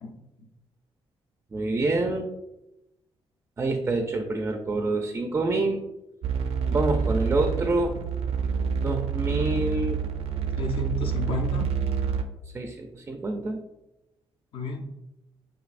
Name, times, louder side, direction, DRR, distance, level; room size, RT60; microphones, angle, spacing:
voice 1, 0.0-0.5 10.6-11.8 14.5-14.9, left 3 dB, 65° left, 3 dB, 0.6 m, -33 dB
voice 2, 1.5-2.2 3.6-5.8 6.7-7.9 8.8-10.0 12.5-13.6, right 2 dB, 20° right, 4 dB, 0.3 m, -27 dB
sound 1, 6.2-12.2, right 6 dB, 85° right, 0.5 m, -27 dB
6.4 x 2.6 x 2.5 m, 0.92 s
cardioid pair, 150°, 10 cm